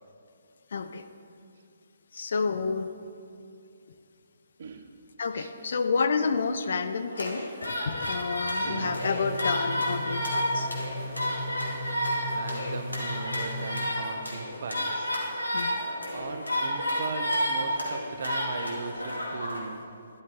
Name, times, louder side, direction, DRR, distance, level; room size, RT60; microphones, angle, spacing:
voice 1, 0.7-1.0 2.1-2.9 5.2-10.7 15.5-15.8, left 5 dB, 55° left, 9 dB, 0.6 m, -29 dB
sound 1, 7.1-19.6, equal, 80° left, 2.1 m, -31 dB
voice 2, 8.6-9.0 12.2-19.8, right 4 dB, 50° right, 7 dB, 0.8 m, -39 dB
sound 2, 8.8-13.9, left 1 dB, 15° right, 1.3 m, -37 dB
12.0 x 11.5 x 3.5 m, 2.5 s
figure-of-eight pair, 130°, 0 cm